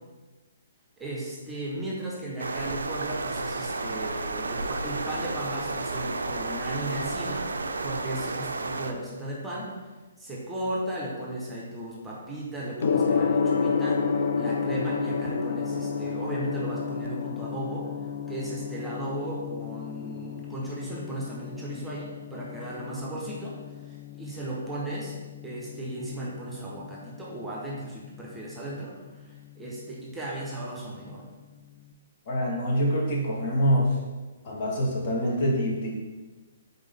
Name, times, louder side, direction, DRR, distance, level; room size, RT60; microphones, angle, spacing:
voice 1, 1.0-9.9 10.2-17.9 18.3-25.1 25.4-31.2, right 1 dB, 5° right, -6 dB, 0.8 m, -36 dB
sound 1, 2.4-8.9, right 3 dB, 75° right, 0.3 m, -32 dB
Gong, 12.8-31.8, left 5 dB, 60° left, 0.3 m, -32 dB
voice 2, 32.3-34.0 34.4-36.0, equal, 40° left, -2 dB, 0.9 m, -25 dB
3.9 x 3.5 x 3.4 m, 1.3 s
figure-of-eight pair, 130°, 0 cm